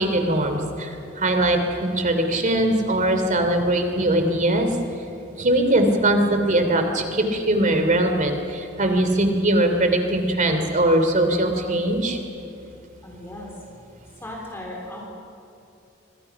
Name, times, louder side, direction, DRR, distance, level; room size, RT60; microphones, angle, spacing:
voice 1, 0.0-4.7 5.4-12.2, right 1 dB, 40° right, 6 dB, 3.0 m, -21 dB
voice 2, 13.0-13.6 14.2-15.1, left 1 dB, 15° left, -2 dB, 3.7 m, -36 dB
27.0 x 25.0 x 5.9 m, 2.7 s
head